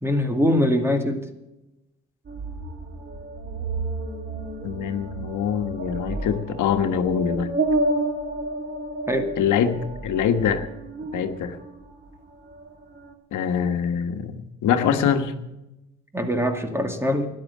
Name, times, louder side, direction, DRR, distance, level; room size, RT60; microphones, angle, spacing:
voice 1, 0.0-1.3 9.1-9.3 16.1-17.3, equal, 10° right, 6 dB, 2.2 m, -22 dB
sound 1, 2.3-12.1 12.4-13.1, right 2 dB, 35° right, 2.9 m, -30 dB
voice 2, 4.6-7.5 9.4-10.7 11.1-11.6 13.3-15.3, left 8 dB, 80° left, 7 dB, 1.4 m, -24 dB
13.0 x 10.5 x 8.6 m, 0.95 s
cardioid pair, 90°, 30 cm